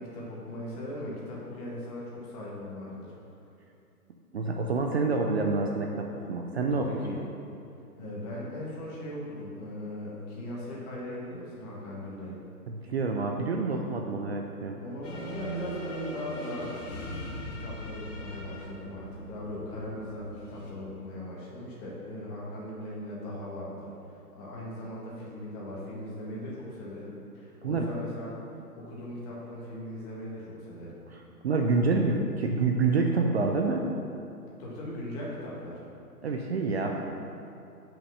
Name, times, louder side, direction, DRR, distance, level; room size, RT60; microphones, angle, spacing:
voice 1, 0.0-3.1 6.7-7.2 8.0-12.4 14.8-16.9 17.6-28.3 28.7-31.0 34.6-35.8, left 1 dB, 25° left, -5 dB, 1.6 m, -39 dB
voice 2, 4.3-7.0 12.7-14.8 27.6-27.8 31.1-33.9 36.2-37.0, right 3 dB, 45° right, 2 dB, 0.5 m, -27 dB
sound 1, 15.0-20.7, equal, 50° left, 1.7 m, -40 dB
5.9 x 5.3 x 6.3 m, 2.6 s
hypercardioid pair, 145°, 47 cm